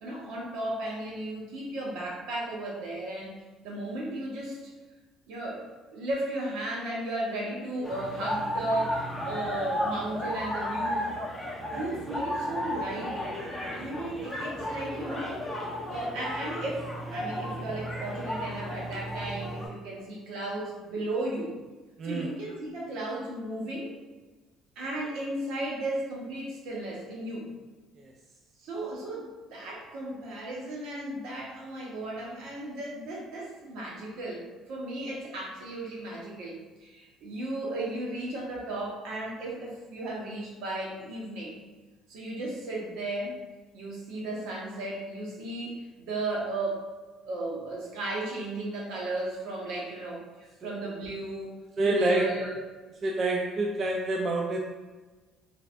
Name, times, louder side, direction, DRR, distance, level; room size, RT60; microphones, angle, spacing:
voice 1, 0.0-4.7 5.3-5.7 5.9-11.1 11.7-13.2 13.7-15.4 15.9-21.6 22.0-23.9 24.8-27.5 28.6-41.5 42.1-43.4 43.7-46.9 47.2-52.6, right 1 dB, 75° right, -3 dB, 1.0 m, -35 dB
sound 1, 7.8-19.7, equal, 5° left, 0.8 m, -34 dB
voice 2, 22.0-22.3 50.6-50.7 51.8-52.3 53.0-54.6, right 2 dB, 40° right, 0 dB, 0.3 m, -27 dB
3.3 x 3.2 x 2.5 m, 1.3 s
cardioid pair, 135°, 0 cm